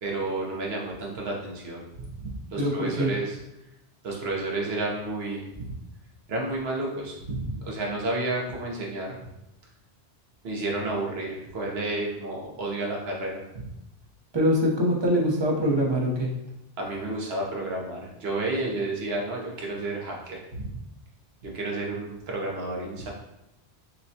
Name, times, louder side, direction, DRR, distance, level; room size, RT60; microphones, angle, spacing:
voice 1, 0.0-3.4 4.0-5.6 6.3-9.1 10.4-13.5 16.8-20.7 21.4-23.1, right 2 dB, 65° right, -1 dB, 1.0 m, -31 dB
voice 2, 2.6-3.1 14.3-16.3, equal, 30° right, -2 dB, 0.7 m, -23 dB
6.4 x 2.2 x 2.7 m, 0.88 s
omnidirectional pair, 1.1 m